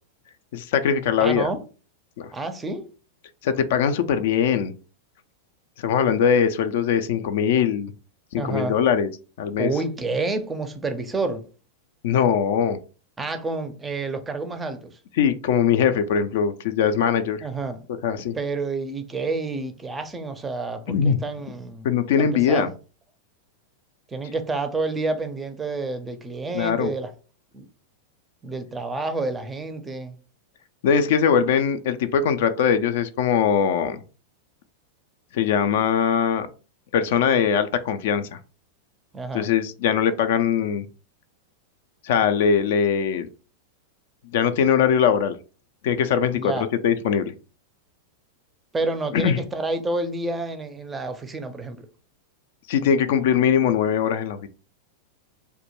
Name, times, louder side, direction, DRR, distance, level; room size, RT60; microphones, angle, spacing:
voice 1, 0.5-1.5 2.2-2.3 3.4-4.7 5.8-7.9 8.3-9.1 9.4-9.7 12.0-12.8 15.2-17.5 18.0-18.4 20.9-21.2 21.8-22.7 26.5-26.9 30.8-34.0 35.3-36.5 36.9-38.4 39.3-40.9 42.0-43.3 44.3-45.4 45.8-46.5 46.8-47.3 49.1-49.4 52.7-54.5, left 7 dB, 65° left, 0.3 m, -21 dB
voice 2, 1.2-1.6 2.3-2.9 8.3-8.8 9.6-11.4 13.2-15.0 17.4-17.9 18.3-21.9 22.2-22.7 24.1-27.1 27.5-27.6 28.4-30.2 39.1-39.5 46.3-46.7 48.7-51.9, right 3 dB, 15° right, 0.4 m, -29 dB
2.1 x 2.1 x 2.9 m
hypercardioid pair, 100°, 0 cm